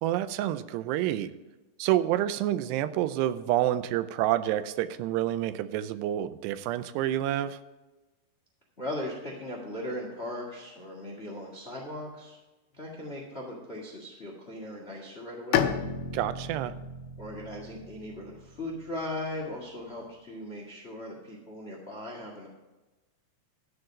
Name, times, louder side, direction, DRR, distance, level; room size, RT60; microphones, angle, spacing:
voice 1, 0.0-1.3 1.8-7.6 16.1-16.7, right 13 dB, 90° right, 13 dB, 2.7 m, -28 dB
voice 2, 8.8-12.4 12.7-15.7 17.2-22.5, left 1 dB, 35° left, -1 dB, 1.0 m, -38 dB
Bowed string instrument, 15.5-19.2, left 8 dB, 80° left, 2.4 m, -32 dB
13.0 x 4.7 x 7.4 m, 1.1 s
omnidirectional pair, 4.8 m